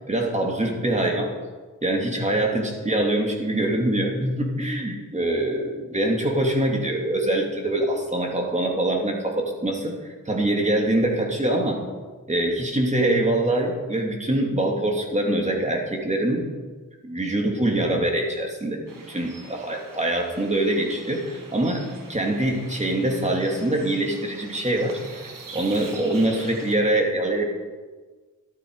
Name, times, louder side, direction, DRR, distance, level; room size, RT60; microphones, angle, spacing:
voice 1, 0.1-1.3 1.8-11.8 12.3-16.5 17.0-18.8 19.1-27.4, right 1 dB, 20° right, 1 dB, 2.7 m, -24 dB
sound 1, 18.9-26.7, right 3 dB, 80° right, 2.2 m, -44 dB
13.5 x 11.5 x 5.0 m, 1.4 s
wide cardioid pair, 85°, 32 cm